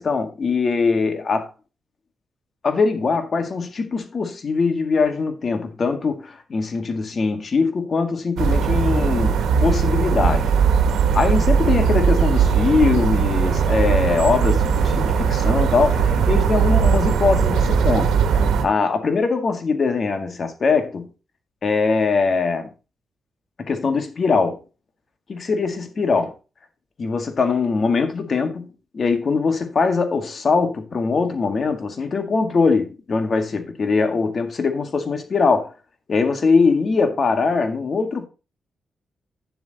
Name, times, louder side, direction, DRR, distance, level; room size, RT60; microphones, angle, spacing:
voice 1, 0.0-1.5 2.6-10.5 11.1-18.2 18.6-21.1 21.6-22.7 23.6-24.6 25.3-26.3 27.0-35.7 36.1-38.3, left 4 dB, 50° left, 1.9 m, -21 dB
sound 1, 8.4-18.7, right 6 dB, 85° right, 1.3 m, -19 dB
9.4 x 7.5 x 4.1 m
cardioid pair, 65°, 0 cm